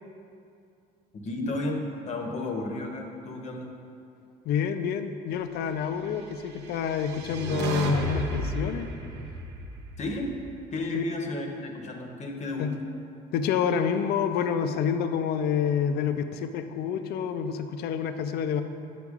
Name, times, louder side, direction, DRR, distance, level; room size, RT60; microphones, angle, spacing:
voice 1, 1.1-3.7 10.0-10.3 10.7-12.7, left 2 dB, 45° left, 2 dB, 0.8 m, -33 dB
voice 2, 4.5-8.9 10.9-11.0 12.6-12.7 13.3-18.6, left 7 dB, 70° left, 8 dB, 0.4 m, -28 dB
sound 1, 6.5-10.8, right 2 dB, 90° right, 0.7 m, -33 dB
8.1 x 5.8 x 2.4 m, 2.5 s
cardioid pair, 110°, 17 cm